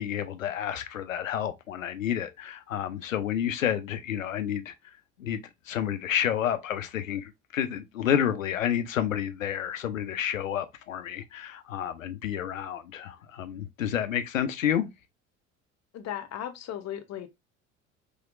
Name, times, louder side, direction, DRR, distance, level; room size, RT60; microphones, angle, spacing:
voice 1, 0.0-4.9 5.2-14.9, left 9 dB, 85° left, 0.6 m, -30 dB
voice 2, 15.9-17.3, left 10 dB, 40° left, 0.9 m, -36 dB
5.8 x 2.8 x 2.5 m
figure-of-eight pair, 55°, 39 cm